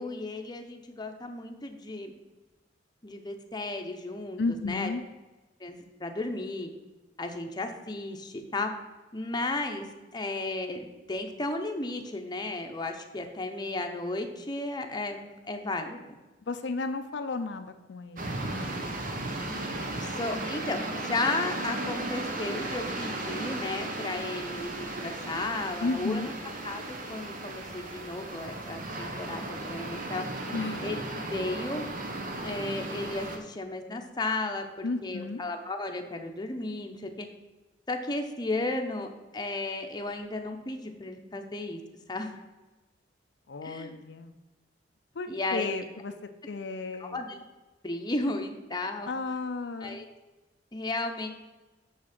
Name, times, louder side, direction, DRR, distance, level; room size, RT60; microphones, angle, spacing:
voice 1, 0.0-2.1 3.0-4.9 5.6-6.7 7.2-8.7 9.1-16.0 20.0-26.3 26.6-30.5 30.8-31.0 31.3-31.8 32.4-37.3 37.9-39.1 39.3-41.8 42.1-42.4 43.6-44.0 45.3-45.8 47.0-47.4 47.8-49.1 49.8-50.1 50.7-51.3, left 2 dB, 25° left, 4 dB, 0.8 m, -34 dB
voice 2, 4.4-5.0 16.5-18.4 25.8-26.3 30.5-30.8 34.8-35.4 43.5-44.3 45.1-46.1 46.5-47.2 49.1-50.0, left 3 dB, 70° left, 7 dB, 0.5 m, -33 dB
sound 1, 18.2-33.4, right 2 dB, 50° right, 1.0 m, -35 dB
6.5 x 6.2 x 5.9 m, 1.2 s
head